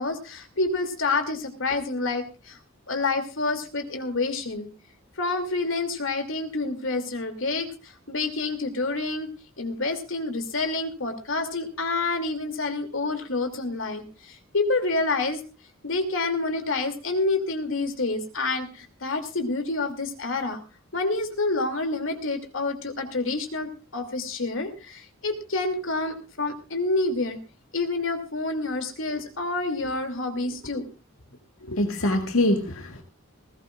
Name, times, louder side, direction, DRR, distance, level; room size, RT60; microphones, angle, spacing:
voice 1, 0.0-2.6 2.9-4.7 5.2-9.3 9.6-15.4 15.8-20.6 20.9-27.4 27.7-30.9, left 3 dB, 70° left, 6 dB, 2.8 m, -28 dB
voice 2, 31.7-33.0, left 1 dB, 90° left, 3 dB, 1.9 m, -24 dB
20.0 x 17.0 x 2.5 m, 0.32 s
head